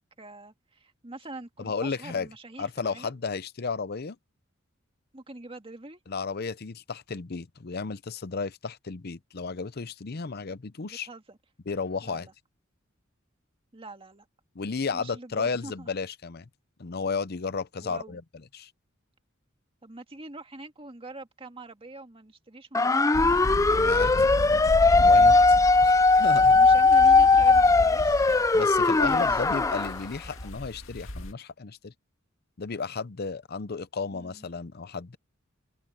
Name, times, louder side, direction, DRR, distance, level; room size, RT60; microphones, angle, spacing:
voice 1, 0.2-3.2 5.1-6.0 10.8-11.4 12.0-12.3 13.7-14.3 14.9-15.9 17.8-18.2 19.8-23.1 25.1-25.4 26.5-28.3 29.1-29.4 34.1-34.5, right 2 dB, 30° right, 2.1 m, -44 dB
voice 2, 1.6-2.3 2.6-4.2 6.1-11.1 11.7-12.3 14.5-16.5 16.8-18.2 18.5-18.7 23.8-24.3 25.0-25.3 25.8-26.6 28.5-31.9 32.6-35.2, left 4 dB, 50° left, 0.7 m, -33 dB
sound 1, 22.7-29.9, left 3 dB, 15° left, 0.4 m, -19 dB
sound 2, 23.1-31.3, left 1 dB, 85° left, 2.4 m, -35 dB
open air
head